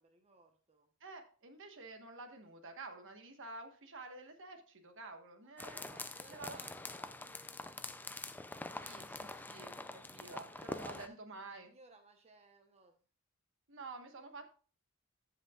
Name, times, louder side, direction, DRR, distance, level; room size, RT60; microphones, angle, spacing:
voice 1, 0.0-0.9 5.9-8.7 10.4-13.0, right 3 dB, 30° right, 4 dB, 1.0 m, -63 dB
voice 2, 1.0-6.6 8.8-11.7 13.7-14.5, right 3 dB, 60° right, 6 dB, 1.3 m, -50 dB
sound 1, 5.6-11.1, left 2 dB, 10° left, 0.4 m, -45 dB
14.5 x 5.7 x 2.4 m, 0.38 s
head